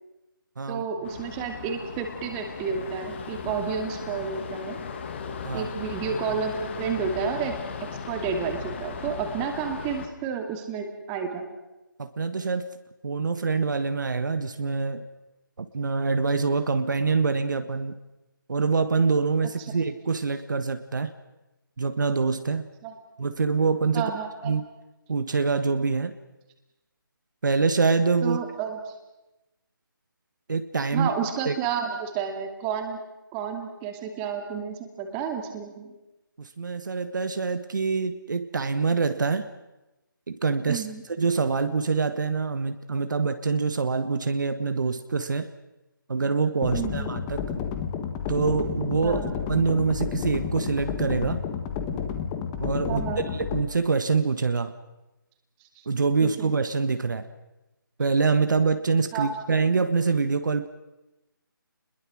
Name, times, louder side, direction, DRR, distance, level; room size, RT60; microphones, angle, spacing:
voice 1, 0.7-4.8 5.5-11.5 22.8-22.9 23.9-24.5 28.2-28.8 30.9-33.0 33.3-35.9 40.7-41.0 46.7-47.1 49.0-49.3 52.9-53.2 56.2-56.6 59.1-59.3, right 6 dB, 15° right, 4 dB, 2.4 m, -31 dB
sound 1, 1.0-10.1, left 6 dB, 30° left, 2.3 m, -37 dB
voice 2, 12.0-12.7 13.0-15.1 15.6-18.0 18.5-21.1 21.8-22.7 23.2-24.1 24.4-24.6 25.1-26.2 27.4-28.4 30.5-31.1 31.4-31.5 36.4-39.5 40.3-40.9 41.2-45.5 46.1-47.4 48.3-49.2 49.5-51.4 52.6-53.0 53.3-54.7 55.8-57.3 58.0-60.7, right 4 dB, 60° right, 10 dB, 1.5 m, -25 dB
sound 2, 46.6-53.6, left 7 dB, 15° left, 1.5 m, -31 dB
29.5 x 21.5 x 6.3 m, 1.0 s
figure-of-eight pair, 160°, 12 cm